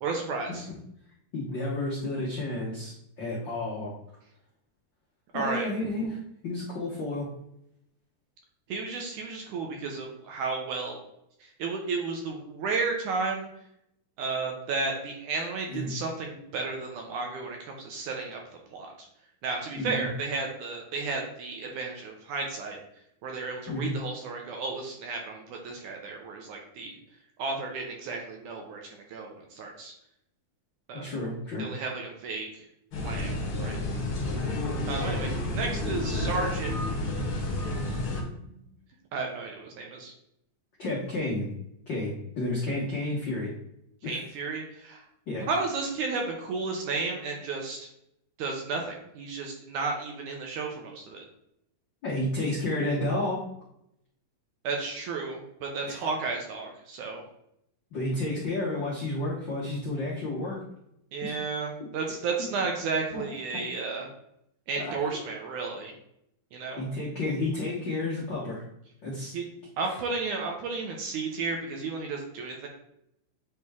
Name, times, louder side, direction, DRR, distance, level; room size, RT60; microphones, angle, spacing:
voice 1, 0.0-0.7 5.3-5.7 8.7-11.0 11.4-13.5 14.2-18.4 18.7-19.1 19.4-22.8 23.2-27.0 27.4-29.9 30.9-31.1 31.6-32.7 33.0-33.3 33.6-33.8 34.9-38.3 39.1-40.1 44.0-45.0 45.5-47.9 48.4-51.2 54.6-57.2 61.1-64.1 64.7-65.9 66.5-66.8 69.3-69.5 69.8-72.7, right 4 dB, 75° right, 1 dB, 1.9 m, -33 dB
voice 2, 1.3-3.9 5.3-7.3 15.7-15.9 19.7-20.1 23.7-23.9 30.9-31.6 40.8-41.5 41.9-43.5 44.0-44.2 45.3-45.5 52.0-53.4 55.9-56.0 57.9-60.6 61.2-61.4 63.1-63.2 64.7-64.9 66.8-68.6 69.0-69.3 69.8-69.9, left 2 dB, 80° left, -6 dB, 1.0 m, -31 dB
sound 1, 32.9-38.2, left 2 dB, 50° left, 1.8 m, -30 dB
8.6 x 3.3 x 3.5 m, 0.77 s
omnidirectional pair, 4.2 m